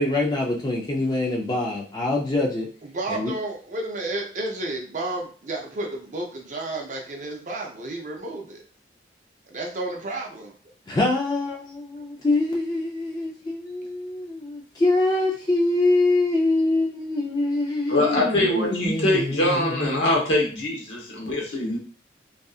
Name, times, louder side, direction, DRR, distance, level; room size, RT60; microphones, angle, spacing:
voice 1, 0.0-2.7 3.1-3.3 10.9-20.1, left 2 dB, 20° left, -2 dB, 0.4 m, -24 dB
voice 2, 2.9-8.6 9.5-10.6, right 2 dB, 40° right, 1 dB, 0.5 m, -31 dB
voice 3, 17.9-21.8, left 1 dB, 70° left, -2 dB, 0.9 m, -23 dB
2.7 x 2.4 x 2.3 m, 0.40 s
head